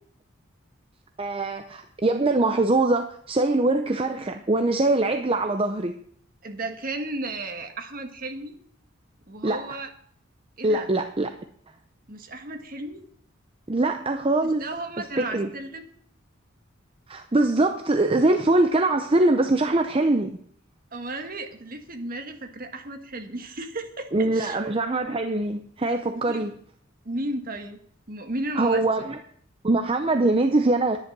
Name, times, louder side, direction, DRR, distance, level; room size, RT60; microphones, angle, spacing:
voice 1, 1.2-6.0 9.4-9.8 10.6-11.3 13.7-14.6 15.0-15.5 17.1-20.4 24.1-26.5 28.6-29.2 29.6-31.0, right 2 dB, 30° right, 6 dB, 0.6 m, -23 dB
voice 2, 6.4-8.6 9.3-9.9 10.6-10.9 12.1-13.1 14.4-15.9 20.9-24.6 26.3-26.5 27.1-27.8 28.1-28.9, right 2 dB, 45° right, 5 dB, 1.6 m, -34 dB
11.0 x 10.5 x 6.1 m, 0.63 s
head